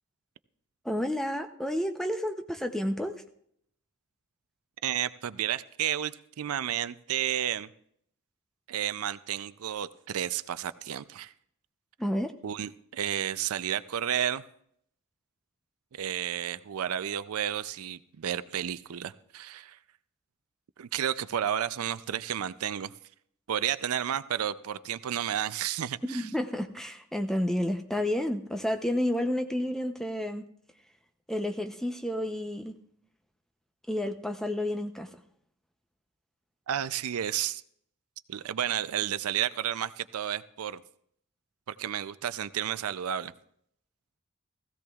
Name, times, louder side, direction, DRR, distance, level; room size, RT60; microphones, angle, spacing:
voice 1, 0.8-3.2 12.0-12.3 26.1-30.4 31.3-32.8 33.9-35.1, left 1 dB, ahead, 6 dB, 0.6 m, -30 dB
voice 2, 4.8-7.7 8.7-11.3 12.4-14.4 15.9-19.8 20.8-22.9 23.5-26.3 36.7-37.6 38.3-40.8 41.7-43.3, right 10 dB, 85° right, 15 dB, 0.4 m, -32 dB
16.5 x 15.0 x 2.4 m, 0.68 s
head